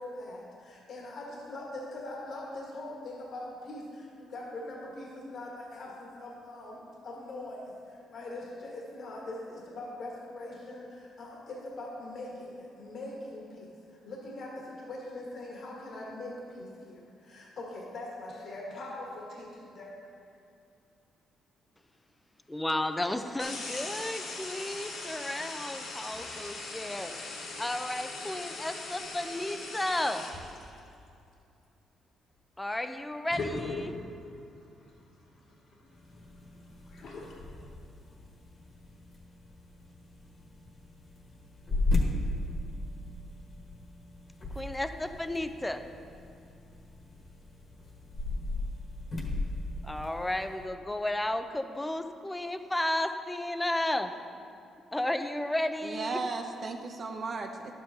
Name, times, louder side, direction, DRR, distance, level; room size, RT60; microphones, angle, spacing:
voice 1, 0.0-20.0, left 2 dB, 60° left, -3 dB, 1.5 m, -42 dB
voice 2, 22.5-27.1 27.6-30.3 32.6-34.0 44.6-45.8 49.8-54.1 54.9-56.2, left 1 dB, 10° left, 8 dB, 0.5 m, -33 dB
sound 1, 23.4-30.8 32.9-33.0 33.3-34.2 34.8-34.9 35.4-37.4, left 3 dB, 80° left, 1.8 m, -40 dB
sound 2, 35.9-50.7, left 2 dB, 40° left, 1.4 m, -36 dB
voice 3, 55.8-57.7, right 3 dB, 50° right, 3 dB, 0.6 m, -35 dB
11.5 x 7.7 x 2.8 m, 2.6 s
cardioid pair, 90°, 0 cm